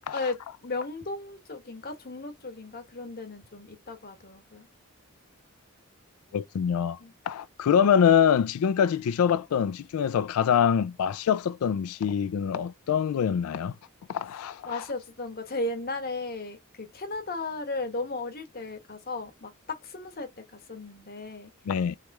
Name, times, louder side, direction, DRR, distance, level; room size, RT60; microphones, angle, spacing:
voice 1, 0.1-4.7 7.0-7.1 14.7-21.5, left 3 dB, 45° left, 1.1 m, -35 dB
voice 2, 6.3-7.0 7.3-13.7 14.1-14.8 21.7-22.0, left 8 dB, 80° left, 0.3 m, -24 dB
3.3 x 3.0 x 4.6 m
head